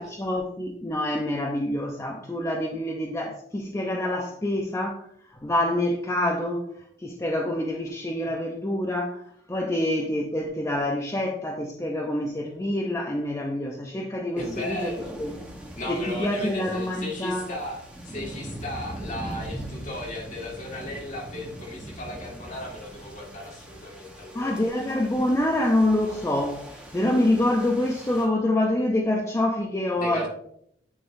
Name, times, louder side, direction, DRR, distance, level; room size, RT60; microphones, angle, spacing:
voice 1, 0.0-6.6 7.0-9.2 9.5-14.9 15.2-15.3 15.9-17.4 24.3-26.6 26.9-30.3, left 1 dB, 15° left, 0 dB, 0.6 m, -26 dB
voice 2, 14.4-15.2 15.8-25.0 29.9-30.3, left 1 dB, 45° left, -2 dB, 1.8 m, -36 dB
sound 1, 14.4-28.3, right 1 dB, 5° right, 1.0 m, -41 dB
9.4 x 4.0 x 2.6 m, 0.70 s
head